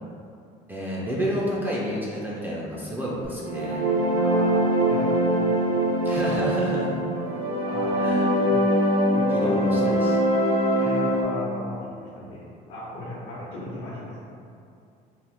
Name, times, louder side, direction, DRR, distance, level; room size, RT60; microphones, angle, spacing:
voice 1, 0.7-3.9 6.0-6.9 8.0-8.3 9.3-10.2, equal, 10° right, -6 dB, 0.3 m, -29 dB
sound 1, 3.3-11.2, right 1 dB, 85° right, 0.8 m, -23 dB
voice 2, 4.2-4.6 4.8-5.7 6.2-6.5 7.2-7.3 7.6-8.0 8.4-8.7 9.1-10.0 10.7-12.4 12.7-14.1, left 1 dB, 85° left, -9 dB, 0.8 m, -36 dB
2.9 x 2.0 x 3.3 m, 2.5 s
cardioid pair, 140°, 17 cm